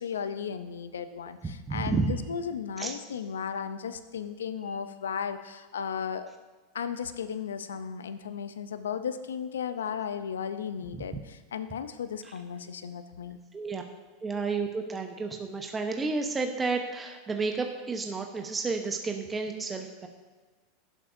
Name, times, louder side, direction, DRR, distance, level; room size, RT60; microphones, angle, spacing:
voice 1, 0.0-6.3 6.7-13.4, left 7 dB, 85° left, 11 dB, 0.6 m, -35 dB
voice 2, 1.7-2.1 2.8-2.9 10.9-11.0 13.5-13.8 14.2-20.1, right 4 dB, 20° right, 4 dB, 1.0 m, -31 dB
16.0 x 7.3 x 2.7 m, 1.4 s
hypercardioid pair, 95°, 0 cm